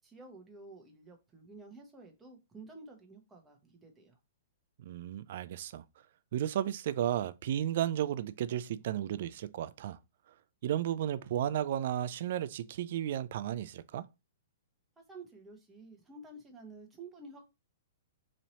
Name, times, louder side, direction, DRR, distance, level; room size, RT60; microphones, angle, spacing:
voice 1, 0.0-4.2 15.0-17.4, right 3 dB, 10° right, 0.9 m, -51 dB
voice 2, 4.8-5.8 6.3-10.0 10.6-14.0, right 11 dB, 55° right, 0.3 m, -33 dB
3.1 x 2.7 x 4.1 m
hypercardioid pair, 145°, 0 cm